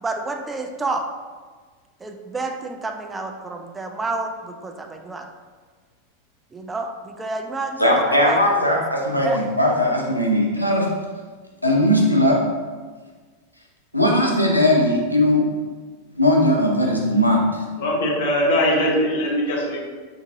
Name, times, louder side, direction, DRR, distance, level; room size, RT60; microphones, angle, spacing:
voice 1, 0.0-1.1 2.0-5.3 6.5-8.6 9.2-9.4, right 3 dB, 15° right, 4 dB, 0.3 m, -29 dB
voice 2, 7.8-10.9 11.6-12.4 13.9-15.5 16.2-17.6, left 1 dB, 90° right, -2 dB, 0.6 m, -18 dB
voice 3, 17.8-19.8, equal, 55° left, -3 dB, 0.8 m, -21 dB
4.7 x 2.5 x 2.6 m, 1.5 s
figure-of-eight pair, 90°, 0 cm